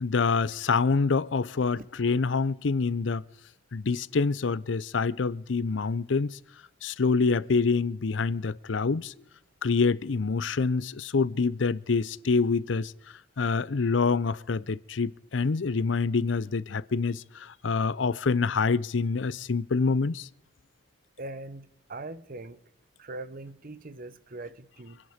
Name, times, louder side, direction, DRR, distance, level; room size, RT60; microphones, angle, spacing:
voice 1, 0.0-3.2 3.7-6.4 6.8-9.1 9.6-12.9 13.4-20.3, left 4 dB, 75° left, 0.6 m, -26 dB
voice 2, 21.2-22.6 23.0-25.0, right 2 dB, 50° right, 0.9 m, -41 dB
26.0 x 10.5 x 5.1 m
head